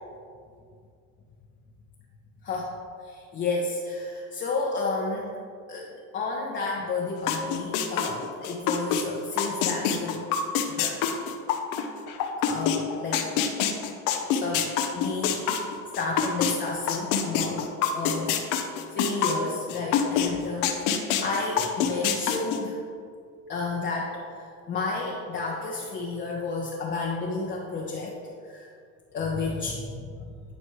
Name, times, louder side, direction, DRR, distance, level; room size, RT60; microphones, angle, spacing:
voice 1, 3.0-5.3 5.7-10.2 10.7-11.0 12.5-13.3 14.4-14.7 14.9-15.6 16.0-17.7 17.9-18.4 18.9-22.8 23.5-28.1 28.4-28.7 29.1-30.0, left 3 dB, 30° left, -3 dB, 0.9 m, -31 dB
sound 1, 7.3-9.0 9.4-16.5 16.9-20.3 20.6-22.6, left 8 dB, 60° left, 0.9 m, -25 dB
11.0 x 4.2 x 3.2 m, 2.3 s
supercardioid pair, 115°, 37 cm